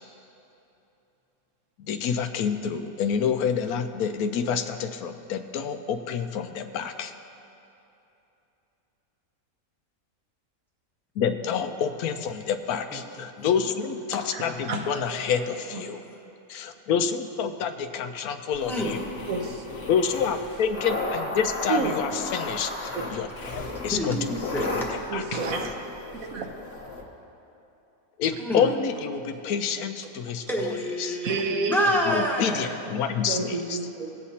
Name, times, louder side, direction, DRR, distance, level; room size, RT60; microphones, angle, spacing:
voice 1, 1.8-7.1 11.2-16.0 16.5-19.0 19.9-24.2 24.6-24.7 25.1-25.4 28.2-30.4 31.0-31.2 32.1-33.8, left 7 dB, 80° left, 8 dB, 1.1 m, -28 dB
voice 2, 12.9-13.5 14.1-14.7 15.1-15.5 18.6-19.0 21.7-22.3 23.9-25.0 28.4-28.7 30.5-32.8, equal, ahead, -2 dB, 1.0 m, -29 dB
voice 3, 14.3-14.9 15.7-15.8 19.3-19.6 21.7-22.0 25.1-25.7 26.3-26.5 31.2-31.9 33.3-34.1, right 4 dB, 70° right, 3 dB, 1.3 m, -29 dB
sound 1, 18.5-27.0, left 2 dB, 45° left, 1.2 m, -34 dB
17.5 x 8.1 x 2.8 m, 2.9 s
omnidirectional pair, 1.5 m